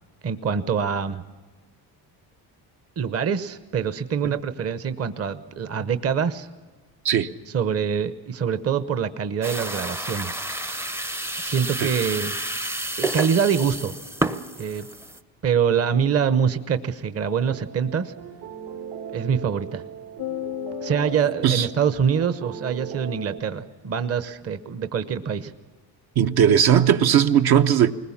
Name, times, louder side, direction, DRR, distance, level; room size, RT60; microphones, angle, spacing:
voice 1, 0.2-1.2 3.0-6.5 7.5-10.4 11.4-12.3 13.0-14.0 14.6-14.9 15.4-18.1 19.1-19.8 20.8-25.5, right 7 dB, 35° right, 0.9 m, -25 dB
sound 1, 9.4-15.2, right 1 dB, 5° right, 0.6 m, -30 dB
sound 2, 17.4-23.4, right 8 dB, 75° right, 3.1 m, -39 dB
sound 3, 20.2-22.7, left 16 dB, 60° left, 0.6 m, -36 dB
voice 2, 26.2-27.9, right 9 dB, 60° right, 1.0 m, -18 dB
21.0 x 20.0 x 7.2 m
cardioid pair, 135°, 42 cm